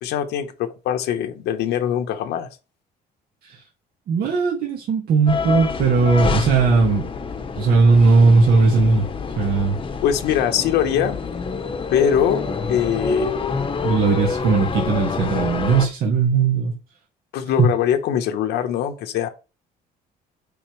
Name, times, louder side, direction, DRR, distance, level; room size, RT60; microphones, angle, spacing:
voice 1, 0.0-2.5 10.0-11.2 11.9-13.4 17.3-19.3, left 9 dB, 85° left, 1.1 m, -22 dB
voice 2, 4.1-7.1 7.6-9.1 9.4-9.8 13.8-16.8 17.6-17.7, right 4 dB, 65° right, 1.9 m, -18 dB
sound 1, 5.3-15.9, left 4 dB, 30° left, 1.0 m, -27 dB
7.2 x 5.3 x 3.2 m
cardioid pair, 110°, 17 cm